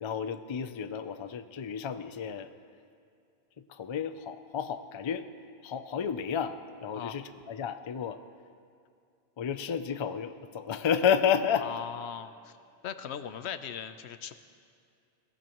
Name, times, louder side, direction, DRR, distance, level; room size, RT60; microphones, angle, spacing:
voice 1, 0.0-2.5 3.7-5.2 5.6-8.2 9.4-11.7, left 7 dB, 40° left, 10 dB, 0.4 m, -31 dB
voice 2, 11.6-12.5 12.8-14.3, left 8 dB, 90° left, 11 dB, 1.0 m, -39 dB
21.5 x 16.0 x 3.0 m, 2.4 s
omnidirectional pair, 1.1 m